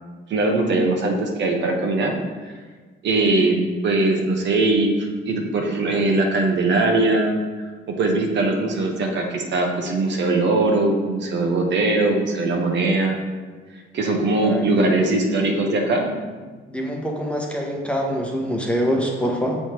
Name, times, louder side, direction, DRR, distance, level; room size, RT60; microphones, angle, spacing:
voice 1, 0.3-2.1 3.0-4.9 5.2-7.7 8.0-13.2 13.9-16.1, right 2 dB, 65° right, 2 dB, 1.0 m, -21 dB
voice 2, 14.4-15.2 16.7-19.6, equal, 5° left, 0 dB, 0.9 m, -25 dB
6.4 x 3.4 x 4.4 m, 1.4 s
cardioid pair, 90°, 20 cm